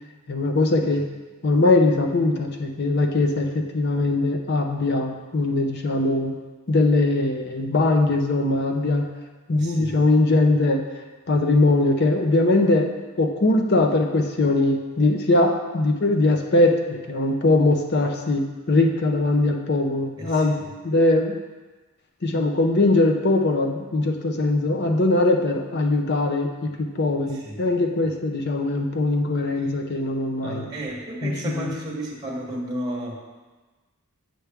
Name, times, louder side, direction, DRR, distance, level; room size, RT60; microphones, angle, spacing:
voice 1, 0.3-1.0 1.4-6.4 6.7-9.1 9.5-10.8 11.3-12.9 13.2-20.6 20.8-21.3 22.2-30.7 31.2-31.7, left 2 dB, 50° left, 4 dB, 0.6 m, -21 dB
voice 2, 9.6-10.0 20.2-20.7 27.3-27.6 30.4-33.2, right 1 dB, 20° right, -4 dB, 1.1 m, -33 dB
7.7 x 5.9 x 3.4 m, 1.3 s
head